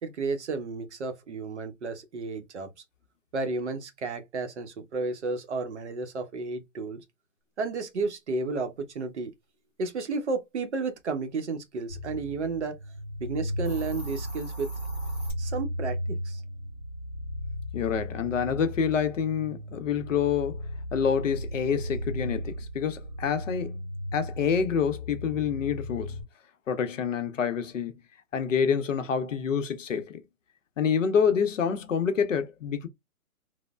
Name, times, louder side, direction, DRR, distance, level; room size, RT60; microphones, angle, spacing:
voice 1, 0.0-2.7 3.3-7.0 7.6-9.3 9.8-12.8 13.2-14.7 15.4-16.4, right 3 dB, 50° right, 0.7 m, -32 dB
sound 1, 11.9-26.2, equal, 20° left, 1.1 m, -36 dB
Hiss, 13.5-15.3, left 1 dB, 5° right, 1.2 m, -46 dB
voice 2, 17.7-20.6 20.9-26.2 26.7-27.9 28.3-30.2 30.8-32.9, left 7 dB, 60° left, 0.6 m, -27 dB
3.0 x 2.0 x 2.2 m
hypercardioid pair, 165°, 43 cm